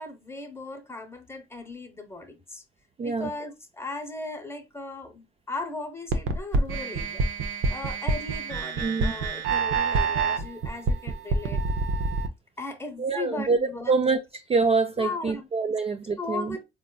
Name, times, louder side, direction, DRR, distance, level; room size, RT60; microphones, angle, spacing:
voice 1, 0.0-2.6 3.0-7.2 7.7-11.6 12.6-13.9 15.0-15.5 16.2-16.6, left 3 dB, 15° left, 0.7 m, -37 dB
voice 2, 3.0-3.3 8.8-9.1 13.0-13.6 13.9-14.2 14.5-16.6, right 4 dB, 30° right, 0.4 m, -25 dB
sound 1, 6.1-12.3, right 3 dB, 85° right, 0.6 m, -26 dB
4.0 x 2.4 x 2.2 m
cardioid pair, 90°, 20 cm